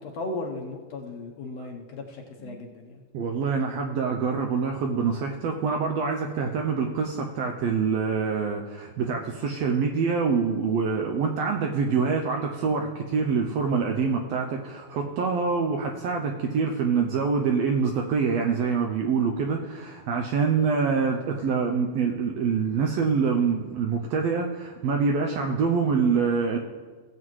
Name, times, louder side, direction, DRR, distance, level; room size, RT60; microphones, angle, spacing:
voice 1, 0.0-3.0 13.1-13.2, left 2 dB, 65° left, 1 dB, 1.9 m, -36 dB
voice 2, 3.1-26.6, right 5 dB, 80° right, 2 dB, 1.5 m, -25 dB
18.0 x 7.6 x 3.1 m, 1.4 s
omnidirectional pair, 3.5 m